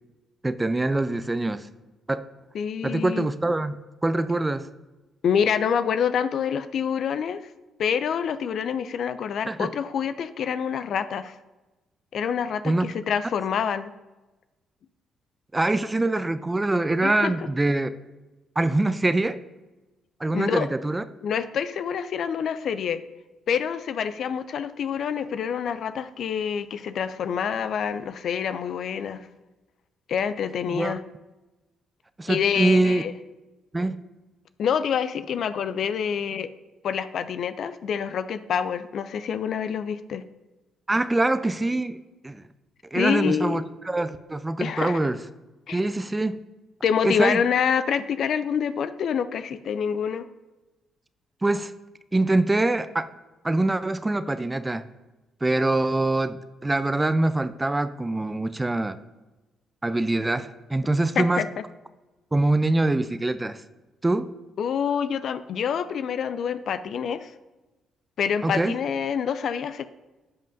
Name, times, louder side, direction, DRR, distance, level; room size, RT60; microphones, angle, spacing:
voice 1, 0.4-1.7 2.1-2.2 2.8-4.7 9.5-9.7 12.6-12.9 15.5-17.9 18.6-19.4 20.2-21.0 30.7-30.9 32.2-33.0 33.7-34.0 40.9-42.0 42.2-42.4 42.9-45.2 45.7-46.4 47.0-47.4 51.4-51.7 52.1-53.1 53.4-54.9 55.4-59.0 59.8-61.5 62.3-63.6 64.0-64.3 68.4-68.7, right 2 dB, 20° right, 13 dB, 0.5 m, -24 dB
voice 2, 2.5-3.3 5.2-7.4 7.8-11.4 12.1-13.9 17.0-17.3 20.3-20.7 21.2-23.0 23.5-29.3 30.1-31.0 32.3-33.1 34.6-36.5 36.8-40.2 42.9-43.6 44.6-45.0 45.7-45.8 46.8-50.3 61.2-61.5 64.6-67.3 68.2-69.9, left 7 dB, 60° left, 12 dB, 0.4 m, -26 dB
15.5 x 5.3 x 2.6 m, 1.1 s
hypercardioid pair, 45°, 0 cm